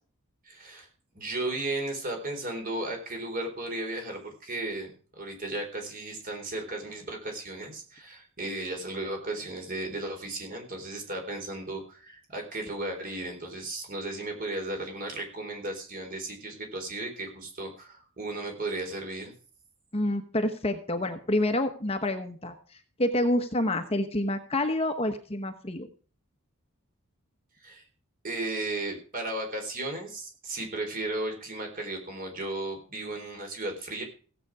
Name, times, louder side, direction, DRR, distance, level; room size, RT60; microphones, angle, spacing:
voice 1, 0.5-0.9 1.1-4.9 5.2-19.3 27.6-27.8 28.2-34.0, right 2 dB, 40° right, 3 dB, 4.1 m, -35 dB
voice 2, 19.9-25.9, left 1 dB, 25° left, 7 dB, 1.1 m, -28 dB
16.5 x 8.2 x 4.8 m, 0.39 s
head